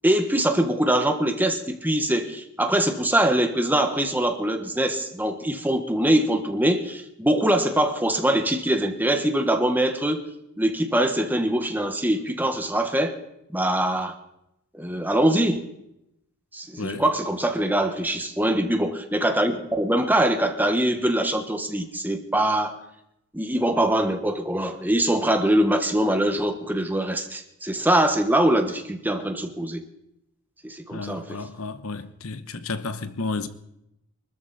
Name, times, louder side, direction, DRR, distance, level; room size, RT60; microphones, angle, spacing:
voice 1, 0.0-10.2 10.6-13.2 13.5-14.2 14.7-15.6 16.5-22.8 23.3-29.8 30.6-31.4, right 1 dB, 10° right, 1.3 m, -23 dB
voice 2, 30.9-33.5, left 3 dB, 70° left, 1.0 m, -32 dB
24.0 x 13.5 x 4.2 m
head